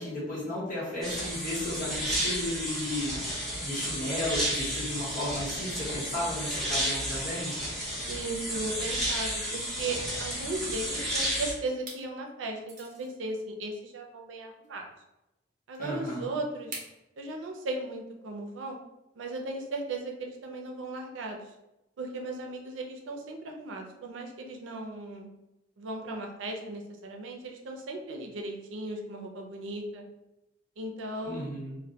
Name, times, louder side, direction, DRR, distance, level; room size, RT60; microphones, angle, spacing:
voice 1, 0.0-7.5 15.8-16.3 31.2-31.8, left 1 dB, 50° left, -6 dB, 1.0 m, -34 dB
sound 1, 1.0-11.5, equal, ahead, 0.6 m, -32 dB
voice 2, 8.1-14.9 15.7-16.7 17.2-18.8 19.2-21.5 22.0-25.3 25.8-30.0 30.8-31.5, right 2 dB, 80° right, 2 dB, 0.4 m, -37 dB
sound 2, 11.1-11.3 11.7-12.1 12.6-13.1 14.6-14.7 16.7-17.0, right 2 dB, 40° right, 0.6 m, -43 dB
2.1 x 2.1 x 2.7 m, 0.93 s
head